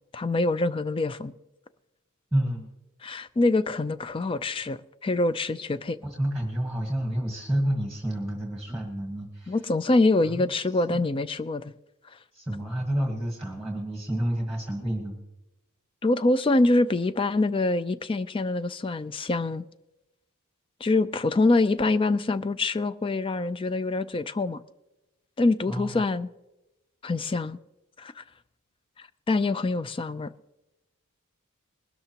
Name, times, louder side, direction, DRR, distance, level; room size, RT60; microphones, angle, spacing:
voice 1, 0.1-1.3 3.0-6.0 9.5-11.7 16.0-19.6 20.8-24.6 25.4-26.3 27.0-27.6 28.0-28.2 29.3-30.3, left 2 dB, 25° left, 0.4 m, -25 dB
voice 2, 2.3-2.7 6.0-9.6 10.2-10.5 10.9-11.0 12.3-15.2 25.7-25.9, right 1 dB, ahead, 1.5 m, -29 dB
21.0 x 12.5 x 2.9 m
head